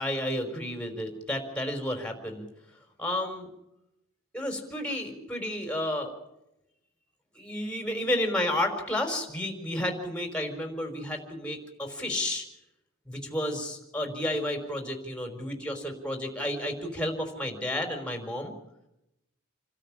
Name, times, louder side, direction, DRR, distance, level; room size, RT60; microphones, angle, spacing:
voice 1, 0.0-2.4 3.0-3.5 4.3-6.1 7.3-12.4 13.1-18.5, left 1 dB, 5° left, 4 dB, 4.6 m, -31 dB
28.5 x 13.0 x 8.6 m, 0.86 s
head